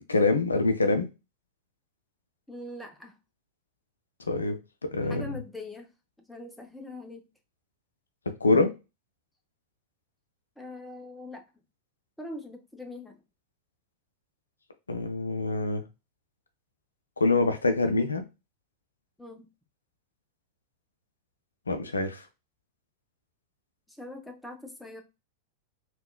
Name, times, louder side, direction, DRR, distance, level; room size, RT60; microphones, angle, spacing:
voice 1, 0.1-1.1 4.3-4.5 4.8-5.3 8.4-8.7 14.9-15.8 17.2-18.2 21.7-22.2, left 3 dB, 75° left, 0.4 m, -25 dB
voice 2, 2.5-3.1 5.1-5.9 6.2-7.2 10.6-11.4 12.2-13.2 19.2-19.5 23.9-25.0, left 2 dB, 5° left, 0.6 m, -42 dB
3.6 x 2.2 x 2.2 m
figure-of-eight pair, 90°, 0 cm